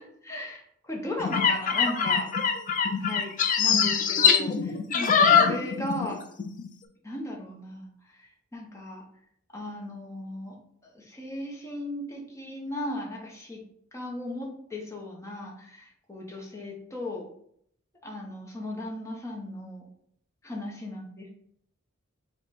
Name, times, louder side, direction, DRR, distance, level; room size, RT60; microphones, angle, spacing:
voice 1, 0.0-2.3 3.0-6.2 7.0-7.9 8.2-9.0 9.5-10.6 10.8-13.6 13.9-17.2 18.0-19.8 20.4-21.3, left 1 dB, 15° left, -1 dB, 0.8 m, -36 dB
sound 1, 1.2-6.1 6.4-6.7, left 6 dB, 40° left, 0.4 m, -23 dB
5.0 x 2.2 x 4.1 m, 0.70 s
head